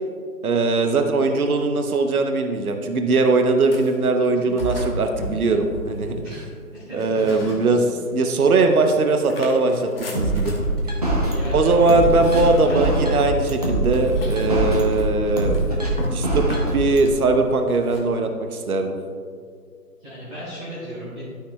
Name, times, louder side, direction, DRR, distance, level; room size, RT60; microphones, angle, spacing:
voice 1, 0.4-6.2 6.9-7.8 8.1-10.5 11.5-15.6 16.1-19.0, right 3 dB, 65° right, 6 dB, 0.8 m, -20 dB
sound 1, 3.6-4.0 4.6-6.5 7.0-8.1 8.5-18.1, left 1 dB, 40° left, 1.2 m, -35 dB
voice 2, 6.2-7.7 11.3-12.0 12.6-12.9 20.0-21.2, equal, 5° right, -15 dB, 1.4 m, -36 dB
sound 2, 10.1-17.1, right 1 dB, 25° right, 0.8 m, -23 dB
11.5 x 5.8 x 2.2 m, 2.2 s
figure-of-eight pair, 165°, 47 cm